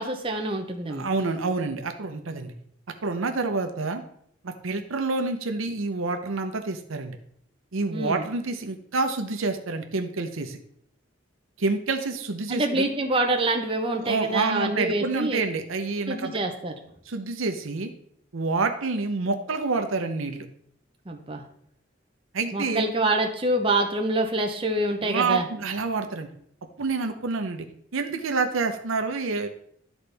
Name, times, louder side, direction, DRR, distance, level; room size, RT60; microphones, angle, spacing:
voice 1, 0.0-1.1 7.9-8.2 12.5-15.4 16.1-16.7 21.1-21.4 22.5-25.4, right 2 dB, 25° right, 3 dB, 0.7 m, -26 dB
voice 2, 0.9-2.5 3.0-4.0 4.4-7.2 7.7-10.6 11.6-12.8 14.0-16.3 17.1-17.9 18.3-20.5 22.3-22.9 25.0-26.3 26.8-27.7 27.9-29.5, right 3 dB, 85° right, 6 dB, 0.8 m, -28 dB
11.5 x 4.0 x 3.4 m, 0.67 s
head